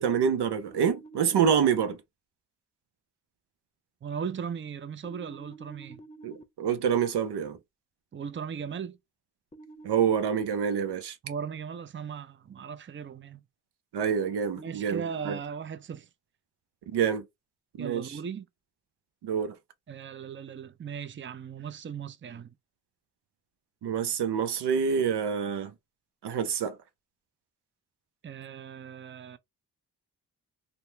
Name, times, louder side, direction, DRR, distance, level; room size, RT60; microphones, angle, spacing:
voice 1, 0.0-2.0 6.2-7.6 9.8-11.2 13.9-15.4 16.9-17.2 17.8-18.2 19.2-19.6 23.8-25.7 26.2-26.8, right 7 dB, 85° right, 0.6 m, -27 dB
sound 1, 0.6-1.9 5.0-6.4 9.5-10.9 14.0-15.4, right 3 dB, 15° left, 0.6 m, -49 dB
voice 2, 4.0-6.0 8.1-9.0 11.2-13.4 14.6-16.1 17.8-18.5 19.9-22.5 28.2-29.4, right 7 dB, 30° right, 0.5 m, -38 dB
2.8 x 2.1 x 3.3 m
cardioid pair, 40°, 39 cm